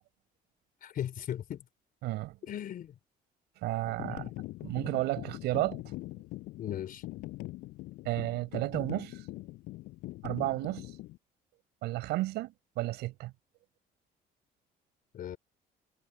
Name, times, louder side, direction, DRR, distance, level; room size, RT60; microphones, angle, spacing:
voice 1, 0.8-1.6 2.4-3.0 4.1-4.4 4.7-4.9 6.6-7.0 15.1-15.4, left 10 dB, 60° left, 4.0 m, -38 dB
voice 2, 2.0-2.4 3.6-4.3 4.6-5.8 8.0-9.2 10.2-10.9 11.8-13.3, right 18 dB, 85° right, 5.9 m, -32 dB
sound 1, 3.8-11.2, left 18 dB, 85° left, 7.2 m, -42 dB
cardioid pair, 110°, 17 cm